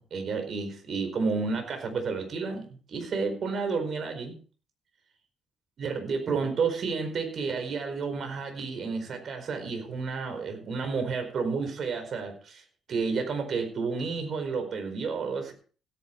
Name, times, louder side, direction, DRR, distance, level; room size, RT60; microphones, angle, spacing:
voice 1, 0.0-4.4 5.8-12.6 12.9-15.5, right 4 dB, 55° right, 6 dB, 4.7 m, -31 dB
16.0 x 9.8 x 4.6 m, 0.40 s
cardioid pair, 90°, 0 cm